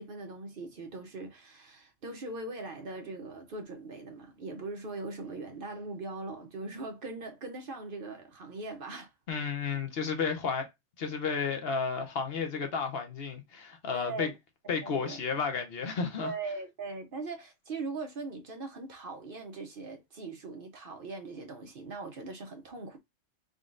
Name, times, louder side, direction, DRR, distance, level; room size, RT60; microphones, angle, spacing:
voice 1, 0.0-9.1 9.7-9.8 13.9-14.3 14.8-15.2 16.2-23.0, right 3 dB, 50° right, 0.8 m, -40 dB
voice 2, 9.3-10.7 11.0-14.3 14.7-16.3, left 5 dB, 60° left, 0.9 m, -32 dB
3.7 x 3.6 x 2.4 m
omnidirectional pair, 1.2 m